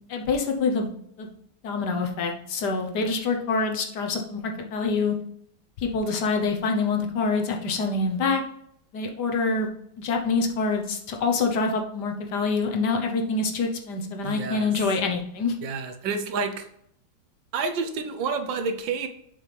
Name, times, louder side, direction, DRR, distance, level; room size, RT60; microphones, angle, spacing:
voice 1, 0.1-0.9 1.2-1.3 1.6-5.2 5.8-8.4 8.9-9.7 10.0-15.5, left 4 dB, 65° left, 3 dB, 1.5 m, -26 dB
voice 2, 14.2-14.7 15.6-16.7 17.5-19.1, right 4 dB, 80° right, 7 dB, 1.5 m, -29 dB
7.5 x 5.9 x 3.4 m, 0.71 s
omnidirectional pair, 2.0 m